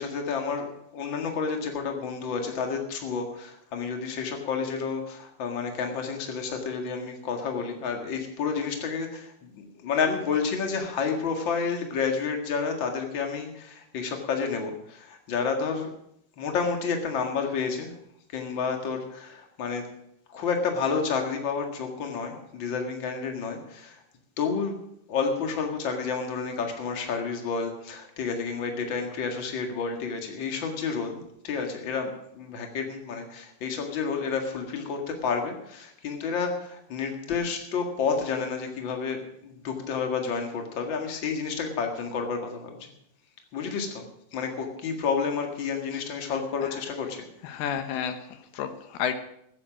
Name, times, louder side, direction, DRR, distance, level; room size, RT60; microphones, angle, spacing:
voice 1, 0.0-15.9 16.4-17.9 18.3-19.8 20.3-24.0 24.4-24.8 25.1-42.9 43.5-44.0 44.3-47.2, left 5 dB, 50° left, 3 dB, 1.4 m, -30 dB
voice 2, 47.4-49.1, left 8 dB, 75° left, 9 dB, 2.7 m, -31 dB
15.0 x 9.3 x 6.2 m, 0.76 s
omnidirectional pair, 5.2 m